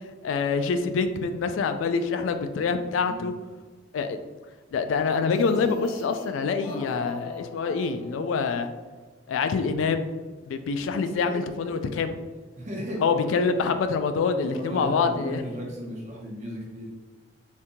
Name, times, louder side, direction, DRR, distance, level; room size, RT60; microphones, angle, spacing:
voice 1, 0.2-3.3 3.9-4.2 4.7-8.7 9.3-10.1 10.4-12.2 13.0-15.4, left 5 dB, 85° left, 8 dB, 0.3 m, -26 dB
voice 2, 3.0-3.3 11.1-11.9 12.6-13.4 14.4-16.9, equal, 35° right, -2 dB, 0.7 m, -35 dB
sound 1, 5.0-8.5, left 3 dB, 15° left, 0.6 m, -41 dB
3.6 x 2.6 x 2.8 m, 1.4 s
head